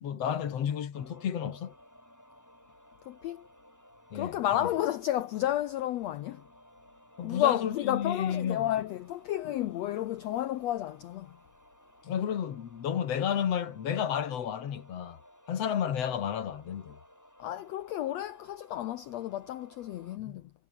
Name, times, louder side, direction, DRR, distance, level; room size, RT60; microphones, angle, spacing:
voice 1, 0.0-1.7 4.1-4.7 7.2-8.7 9.4-9.5 12.0-15.2 15.5-17.0 20.2-20.4, left 9 dB, 50° left, 2.6 m, -32 dB
sound 1, 0.9-20.2, equal, 5° left, 6.8 m, -58 dB
voice 2, 3.1-3.4 4.1-6.4 7.2-11.3 17.4-20.5, left 13 dB, 75° left, 1.5 m, -31 dB
omnidirectional pair, 3.9 m